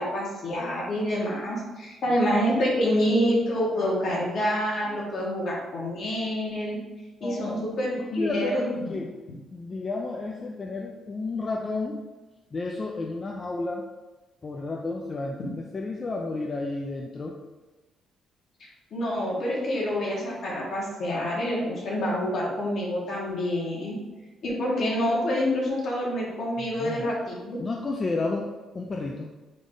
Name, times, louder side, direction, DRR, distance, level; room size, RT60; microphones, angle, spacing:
voice 1, 0.0-6.8 7.2-8.9 18.9-24.0 24.4-27.6, equal, 60° left, -3 dB, 1.2 m, -27 dB
voice 2, 7.2-7.7 8.0-9.1 9.5-12.0 12.5-13.9 14.4-17.4 26.6-27.1 27.6-29.3, left 3 dB, 35° left, 0 dB, 0.4 m, -31 dB
3.7 x 2.5 x 3.7 m, 1.2 s
cardioid pair, 90°, 0 cm